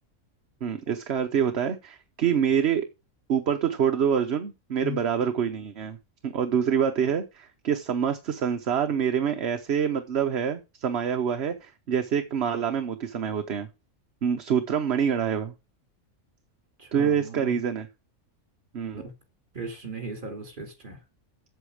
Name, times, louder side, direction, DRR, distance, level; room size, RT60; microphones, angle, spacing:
voice 1, 0.6-2.9 3.3-6.0 6.2-13.7 14.2-15.5 16.9-17.9 18.7-19.0, right 8 dB, 55° right, 1.1 m, -26 dB
voice 2, 16.8-17.6 18.9-19.1 19.5-21.0, right 1 dB, 35° right, 3.0 m, -37 dB
8.3 x 7.8 x 6.5 m
omnidirectional pair, 1.4 m